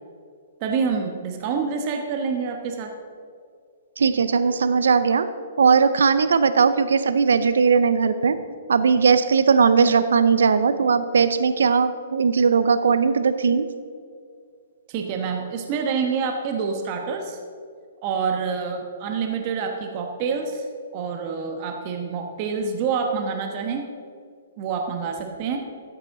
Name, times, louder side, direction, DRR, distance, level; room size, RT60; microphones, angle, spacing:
voice 1, 0.6-2.9 14.9-17.4 18.0-20.6 20.9-23.8 24.6-25.6, right 5 dB, 40° right, 3 dB, 1.2 m, -27 dB
voice 2, 4.0-5.3 5.6-8.4 8.7-13.7, right 5 dB, 75° right, 12 dB, 0.5 m, -18 dB
13.5 x 8.4 x 3.8 m, 2.2 s
hypercardioid pair, 130°, 0 cm